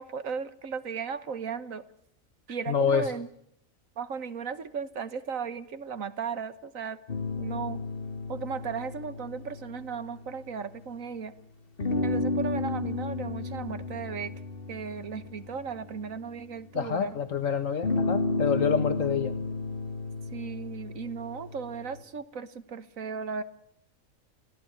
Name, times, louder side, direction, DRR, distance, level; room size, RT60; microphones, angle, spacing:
voice 1, 0.0-1.8 2.5-3.3 4.0-7.0 7.3-7.8 8.3-11.3 12.0-14.3 14.7-17.2 20.3-23.4, right 6 dB, 90° right, 13 dB, 1.8 m, -36 dB
voice 2, 2.7-3.0 16.7-19.3, left 7 dB, 75° left, 9 dB, 1.7 m, -27 dB
sound 1, 7.1-11.0 11.8-16.9 17.8-22.0, left 3 dB, 45° left, 2.0 m, -33 dB
29.5 x 17.5 x 8.8 m, 0.73 s
omnidirectional pair, 1.4 m